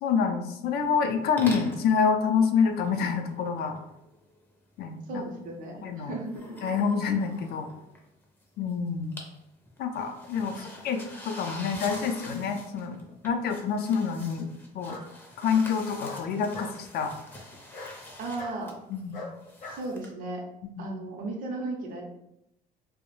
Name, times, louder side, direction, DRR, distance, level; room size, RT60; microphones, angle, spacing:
voice 1, 0.0-3.8 4.8-5.2 5.8-6.1 6.6-7.7 8.6-9.1 9.8-13.0 13.2-15.0 15.4-17.1 18.9-19.2 20.6-20.9, left 6 dB, 65° left, 5 dB, 0.4 m, -27 dB
sound 1, 0.8-1.1 1.4-1.9 2.7-4.4 6.2-8.4 8.7-9.4 9.7-20.1, left 1 dB, 10° left, 0.5 m, -45 dB
voice 2, 5.1-6.5 10.5-10.7 18.2-18.7 19.6-20.4 20.8-22.0, right 2 dB, 55° right, 0 dB, 0.5 m, -35 dB
Bark, 12.7-13.3 14.8-15.1 16.0-16.8 17.7-18.0 18.4-18.6 19.1-19.8, left 2 dB, 50° left, 0.8 m, -41 dB
2.3 x 2.0 x 2.9 m, 0.84 s
cardioid pair, 110°, 17 cm